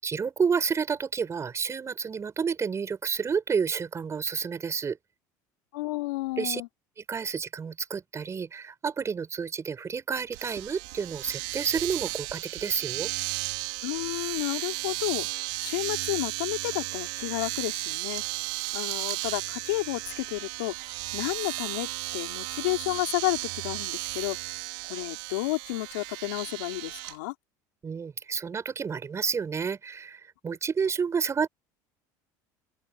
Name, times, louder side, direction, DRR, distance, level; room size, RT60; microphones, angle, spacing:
voice 1, 0.0-5.0 6.4-6.6 7.0-13.1 27.8-31.5, right 6 dB, 30° right, 5.6 m, -30 dB
voice 2, 5.7-6.7 13.8-18.2 18.7-20.7 21.1-21.9 22.1-24.4 24.8-27.3, left 22 dB, 85° left, 4.6 m, -31 dB
Domestic sounds home sounds, 10.3-27.1, right 27 dB, 80° right, 4.9 m, -34 dB
open air
supercardioid pair, 95°, 10 cm